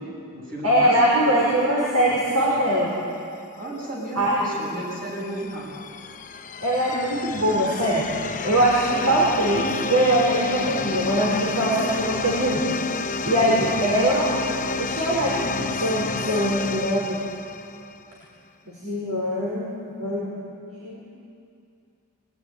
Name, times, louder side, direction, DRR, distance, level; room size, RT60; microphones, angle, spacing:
voice 1, 0.0-1.4 3.6-5.8 13.2-13.7, right 1 dB, 40° right, -3 dB, 7.3 m, -34 dB
voice 2, 0.6-2.9 4.2-4.3 6.6-8.0 8.4-12.6 13.2-14.3 14.8-17.2 18.7-20.4 20.8-21.0, right 1 dB, 85° right, -5 dB, 5.5 m, -22 dB
sound 1, 4.3-18.1, left 4 dB, 35° left, 0.8 m, -30 dB
23.5 x 18.5 x 9.8 m, 2.5 s
head